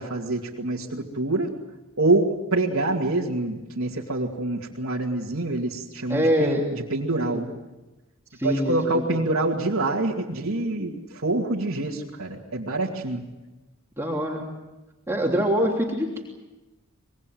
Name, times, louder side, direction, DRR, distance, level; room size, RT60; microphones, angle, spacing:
voice 1, 0.0-1.5 2.0-7.5 8.4-13.2, right 2 dB, 65° right, -4 dB, 2.3 m, -26 dB
voice 2, 6.1-6.7 8.3-9.1 14.0-14.4 15.1-16.2, equal, 10° right, -2 dB, 3.2 m, -24 dB
25.5 x 22.0 x 7.8 m, 1.1 s
head